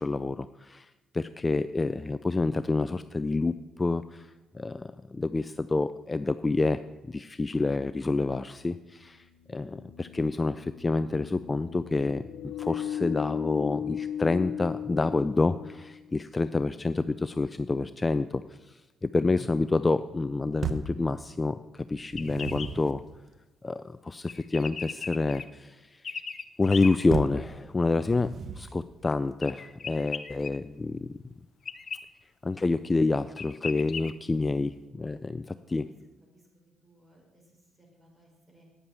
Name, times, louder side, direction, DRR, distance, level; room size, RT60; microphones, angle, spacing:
voice 1, 0.0-23.0 23.6-26.1 26.6-31.1 32.4-35.9, left 3 dB, 25° left, 13 dB, 0.4 m, -28 dB
sound 1, 9.3-16.2, left 9 dB, 80° left, 1.3 m, -37 dB
sound 2, 20.6-21.0 21.9-23.0 27.1-27.5 28.1-28.8, right 5 dB, 50° right, 0.9 m, -35 dB
sound 3, 22.1-22.7 24.3-25.4 26.0-26.9 29.4-30.5 31.7-32.0 33.0-33.1 33.4-34.1, left 6 dB, 45° left, 0.7 m, -37 dB
voice 2, 28.0-28.6 35.4-35.6 36.3-36.5 36.8-37.4 37.8-38.6, right 1 dB, 10° right, 0 dB, 4.7 m, -59 dB
9.6 x 8.8 x 7.3 m, 1.1 s
cardioid pair, 90°, 0 cm